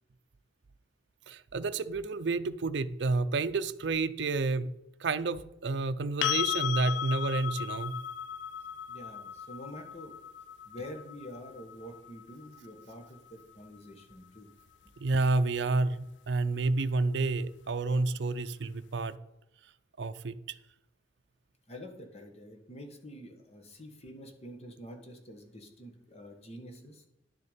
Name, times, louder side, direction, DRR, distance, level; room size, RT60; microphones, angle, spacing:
voice 1, 1.3-4.7 5.0-8.0 15.0-19.2 20.0-20.4, right 3 dB, 65° right, 10 dB, 0.5 m, -30 dB
sound 1, 6.2-14.0 16.8-16.9, left 10 dB, 70° left, 0.4 m, -36 dB
voice 2, 8.9-10.2 10.6-14.5 21.7-27.0, equal, 35° left, 4 dB, 1.5 m, -47 dB
11.0 x 6.9 x 5.1 m, 0.84 s
head